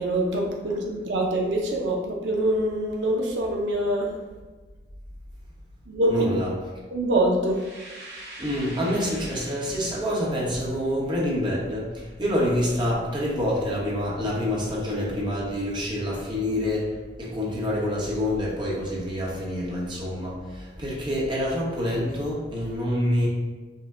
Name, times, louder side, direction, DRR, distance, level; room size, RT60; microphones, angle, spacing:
voice 1, 0.0-4.1 5.9-6.3 6.9-7.6, right 1 dB, 90° right, 0 dB, 0.6 m, -24 dB
voice 2, 6.1-6.5 8.4-23.3, left 1 dB, 25° right, -5 dB, 0.9 m, -27 dB
sound 1, 7.5-10.3, right 1 dB, 60° right, 1.1 m, -43 dB
5.4 x 2.2 x 3.7 m, 1.3 s
head